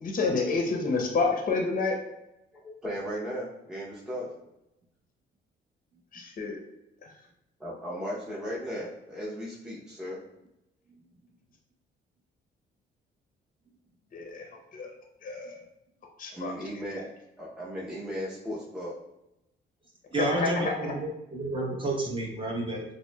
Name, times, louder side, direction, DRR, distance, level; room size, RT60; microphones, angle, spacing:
voice 1, 0.0-2.0 6.1-6.6 7.0-7.1 14.1-14.5 14.7-14.9 15.2-15.6 16.2-16.5 20.2-20.9, left 3 dB, 45° left, 1 dB, 0.7 m, -29 dB
voice 2, 2.5-4.3 7.6-10.2 16.3-17.1 17.4-19.0, equal, 5° right, -6 dB, 0.7 m, -36 dB
voice 3, 20.1-22.8, right 1 dB, 25° right, -2 dB, 1.0 m, -30 dB
5.8 x 2.1 x 2.2 m, 0.88 s
cardioid pair, 110°, 19 cm